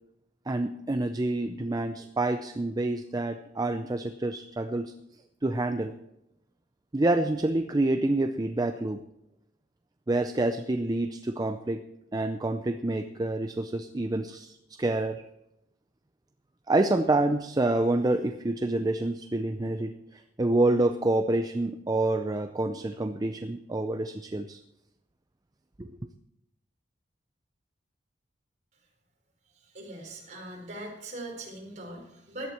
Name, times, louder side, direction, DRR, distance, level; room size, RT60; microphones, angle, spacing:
voice 1, 0.5-4.9 5.4-5.9 6.9-9.0 10.1-11.8 12.1-15.2 16.7-24.6 25.8-25.9, right 2 dB, 20° right, 8 dB, 0.5 m, -27 dB
voice 2, 29.7-32.5, right 1 dB, 40° right, 0 dB, 4.3 m, -40 dB
16.5 x 11.5 x 4.4 m, 0.86 s
head